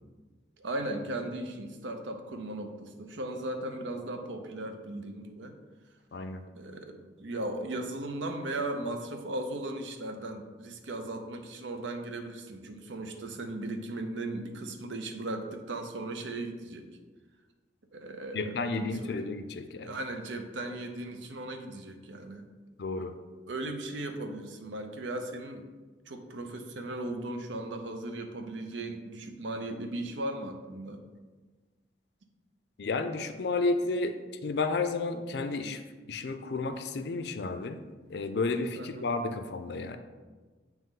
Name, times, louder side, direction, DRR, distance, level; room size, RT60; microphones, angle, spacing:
voice 1, 0.6-5.5 6.6-16.9 17.9-19.3 19.8-22.4 23.5-25.7 26.1-31.0 38.7-39.1, right 2 dB, 85° right, 5 dB, 0.7 m, -37 dB
voice 2, 18.3-19.9 22.8-23.1 32.8-34.2 34.4-35.8 36.1-37.8 38.1-40.0, left 3 dB, 65° left, 8 dB, 0.4 m, -31 dB
8.9 x 3.0 x 3.7 m, 1.3 s
head